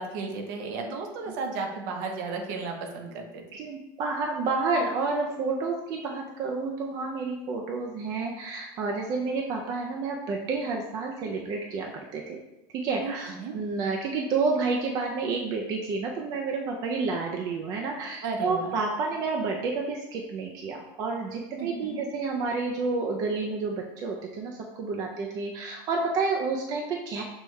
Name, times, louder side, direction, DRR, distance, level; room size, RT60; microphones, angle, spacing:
voice 1, 0.0-3.4 13.0-13.6 18.2-18.7 21.6-22.0, right 4 dB, 60° right, 3 dB, 0.7 m, -34 dB
voice 2, 3.5-12.4 12.7-27.2, right 4 dB, 35° right, 1 dB, 0.4 m, -30 dB
6.1 x 2.2 x 3.1 m, 0.98 s
supercardioid pair, 160°, 11 cm